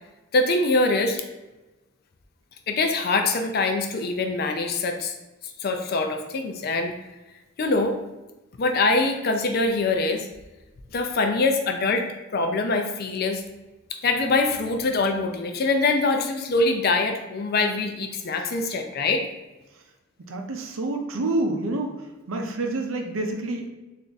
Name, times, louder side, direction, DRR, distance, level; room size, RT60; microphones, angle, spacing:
voice 1, 0.3-1.2 2.7-5.1 5.6-6.9 7.6-7.9 8.6-10.3 10.9-12.1 12.3-13.4 14.0-19.2, left 3 dB, 50° left, 5 dB, 0.4 m, -23 dB
voice 2, 20.3-22.0 22.3-23.7, right 2 dB, 75° right, 3 dB, 0.6 m, -28 dB
3.4 x 2.6 x 3.9 m, 1.1 s
head